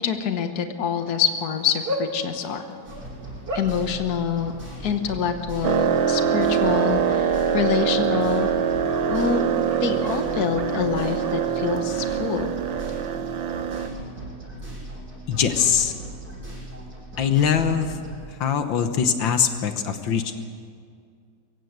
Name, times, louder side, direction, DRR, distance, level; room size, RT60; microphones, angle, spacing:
voice 1, 0.0-2.6 3.5-4.5 4.8-8.5 9.1-9.5 9.8-12.5, left 7 dB, 55° left, 7 dB, 1.7 m, -26 dB
Bark, 1.1-12.4, equal, 30° right, 2.1 m, -39 dB
sound 1, 2.9-18.2, right 1 dB, 55° right, 8.0 m, -38 dB
sound 2, 5.6-13.9, right 8 dB, 90° right, 1.7 m, -24 dB
voice 2, 15.3-15.9 17.2-18.0 18.4-20.3, left 7 dB, 80° left, 8 dB, 1.9 m, -22 dB
23.5 x 16.0 x 8.1 m, 2.2 s
omnidirectional pair, 2.0 m